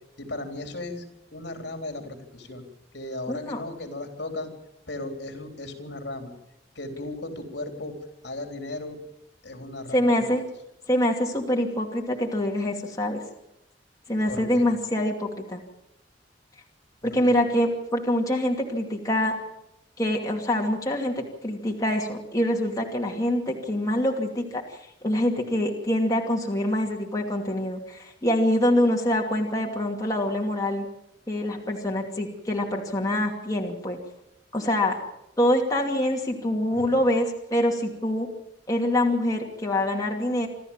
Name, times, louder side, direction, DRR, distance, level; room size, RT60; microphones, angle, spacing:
voice 1, 0.2-1.0 1.3-2.6 2.9-4.5 4.9-6.3 6.8-7.9 8.2-9.0 9.4-10.2 14.3-14.7 17.0-17.3 36.7-36.9, left 2 dB, 65° left, 5 dB, 3.8 m, -36 dB
voice 2, 3.3-3.6 9.9-10.4 10.9-13.2 14.1-15.6 17.0-19.3 20.0-30.8 31.3-34.0 34.5-35.0 35.4-38.3 38.7-40.5, left 1 dB, 20° left, 0 dB, 2.5 m, -25 dB
27.5 x 13.0 x 7.4 m, 0.88 s
head